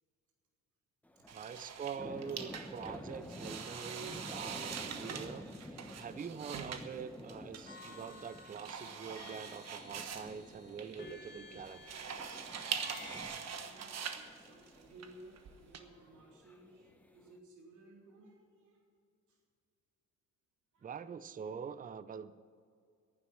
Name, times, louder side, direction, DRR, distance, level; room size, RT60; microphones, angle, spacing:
sound 1, 1.0-17.4, left 1 dB, 5° left, 1.1 m, -51 dB
voice 1, 1.3-11.8 20.8-22.3, right 6 dB, 30° right, 14 dB, 0.6 m, -45 dB
sound 2, 1.3-15.8, right 7 dB, 60° right, 1.3 m, -44 dB
sound 3, 7.7-13.2, left 3 dB, 35° left, 1.8 m, -54 dB
voice 2, 13.5-18.9 19.3-19.4 20.7-20.9, right 1 dB, 80° right, -1 dB, 3.6 m, -58 dB
11.0 x 9.4 x 9.2 m, 2.3 s
cardioid pair, 90°, 30 cm